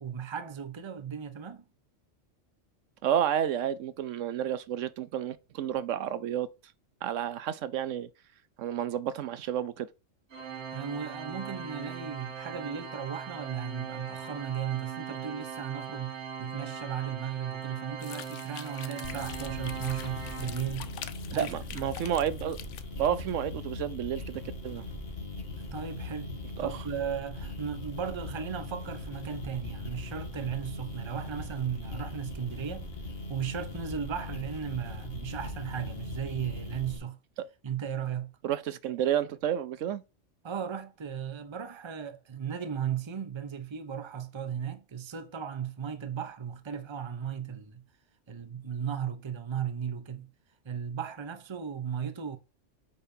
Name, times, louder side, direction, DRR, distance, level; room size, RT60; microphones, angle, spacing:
voice 1, 0.0-1.6 10.7-20.9 21.3-22.0 25.6-32.9 33.3-37.2 37.6-38.3 40.4-47.8 48.3-50.3 50.6-52.4, right 8 dB, 30° right, 0.7 m, -36 dB
voice 2, 3.0-6.5 7.0-8.1 8.6-9.9 21.3-22.6 23.0-24.8 26.6-26.7 38.4-40.0, right 10 dB, 80° right, 1.0 m, -30 dB
Organ, 10.3-21.1, right 7 dB, 60° right, 1.6 m, -40 dB
sound 1, 18.0-23.4, left 9 dB, 70° left, 1.0 m, -45 dB
sound 2, 19.0-37.0, left 2 dB, 50° left, 1.8 m, -40 dB
8.5 x 5.3 x 2.7 m
omnidirectional pair, 1.3 m